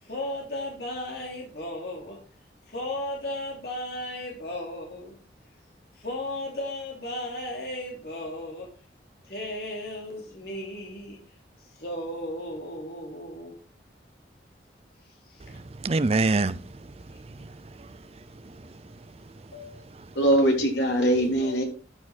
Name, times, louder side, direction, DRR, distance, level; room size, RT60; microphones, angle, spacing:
voice 1, 0.0-2.2 2.7-5.1 5.9-8.7 9.2-11.2 11.7-13.6 15.3-15.4 17.1-17.5, left 1 dB, 60° left, 3.0 m, -35 dB
voice 2, 15.5-17.5 17.8-17.9 18.4-18.7 19.9-20.1, right 3 dB, 35° right, 0.5 m, -28 dB
voice 3, 20.2-21.6, right 1 dB, 85° left, 3.7 m, -22 dB
13.5 x 6.7 x 4.2 m
head